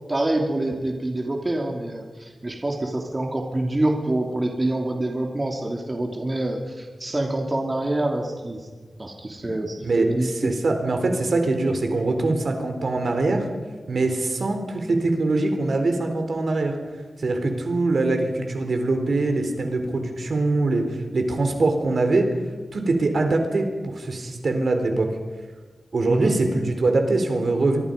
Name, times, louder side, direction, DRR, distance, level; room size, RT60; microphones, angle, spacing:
voice 1, 0.1-8.7 9.0-10.6 26.1-26.4, right 1 dB, 25° right, 1 dB, 3.0 m, -26 dB
voice 2, 9.4-13.4 13.9-16.8 17.2-22.3 22.7-25.1 25.9-27.8, right 2 dB, 65° right, 5 dB, 3.9 m, -23 dB
25.0 x 24.0 x 5.4 m, 1.4 s
wide cardioid pair, 105°, 0 cm